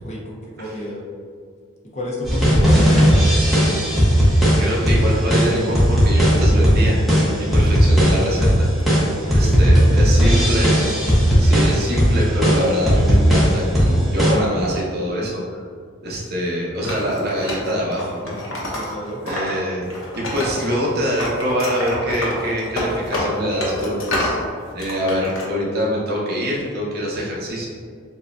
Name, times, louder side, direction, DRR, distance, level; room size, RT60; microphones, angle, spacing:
voice 1, 0.0-1.0 1.9-3.1 9.2-10.8 18.6-19.2, equal, 35° left, -3 dB, 0.7 m, -31 dB
sound 1, 2.2-14.3, equal, ahead, 0.9 m, -16 dB
voice 2, 4.6-7.0 7.4-8.7 9.3-10.8 11.4-15.6 16.0-18.8 19.2-19.9 20.2-24.3 24.7-27.7, equal, 50° right, -5 dB, 0.9 m, -24 dB
Wood, 16.8-19.5 19.8-20.9 21.2-24.4 24.8-25.5, left 1 dB, 75° left, 1.0 m, -28 dB
6.6 x 2.3 x 2.6 m, 2.2 s
head